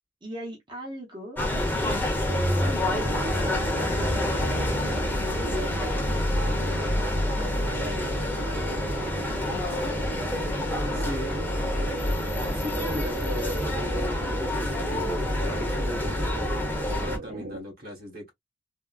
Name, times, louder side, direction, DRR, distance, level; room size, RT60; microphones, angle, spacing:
voice 1, 0.2-1.9 2.4-6.2 6.5-6.9 7.4-10.0 17.3-17.5, equal, 25° right, 0.9 m, -40 dB
sound 1, 1.4-17.2, left 1 dB, 10° left, 0.9 m, -27 dB
sound 2, 2.7-17.6, right 4 dB, 70° right, 0.7 m, -38 dB
voice 2, 10.9-11.4 12.5-18.3, left 1 dB, 55° right, 1.6 m, -38 dB
3.6 x 2.2 x 2.4 m
head